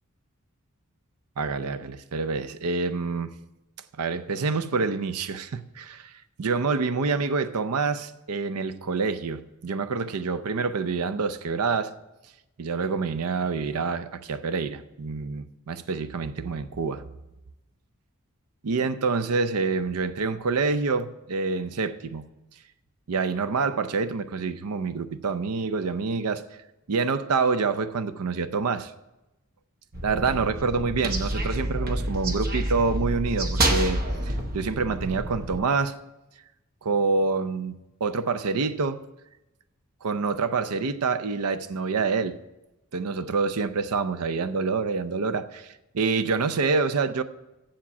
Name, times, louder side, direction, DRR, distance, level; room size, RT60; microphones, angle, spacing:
voice 1, 1.4-3.3 4.0-6.1 6.4-11.9 12.6-17.0 18.6-22.3 23.1-26.4 26.9-28.9 30.0-36.0 36.8-39.0 40.0-42.4 42.9-47.2, right 4 dB, 90° right, 0.6 m, -27 dB
sound 1, 29.9-35.6, right 1 dB, 40° right, 0.9 m, -28 dB
7.4 x 7.4 x 7.1 m
head